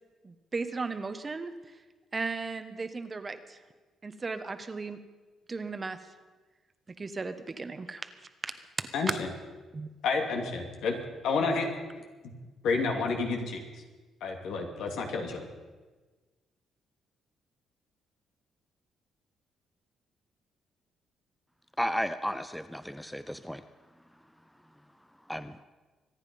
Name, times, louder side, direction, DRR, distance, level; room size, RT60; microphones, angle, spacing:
voice 1, 0.2-1.8 2.1-3.6 4.0-5.0 5.5-6.0 7.0-8.1 8.8-9.2 9.7-9.9, right 4 dB, 30° right, 10 dB, 1.1 m, -36 dB
voice 2, 8.9-9.3 10.0-10.9 11.2-11.7 12.6-13.6 14.2-15.5, left 4 dB, 80° left, 2 dB, 2.7 m, -29 dB
voice 3, 21.8-23.6 25.3-25.5, equal, ahead, 11 dB, 0.6 m, -33 dB
24.5 x 9.7 x 5.5 m, 1.3 s
cardioid pair, 90°, 0 cm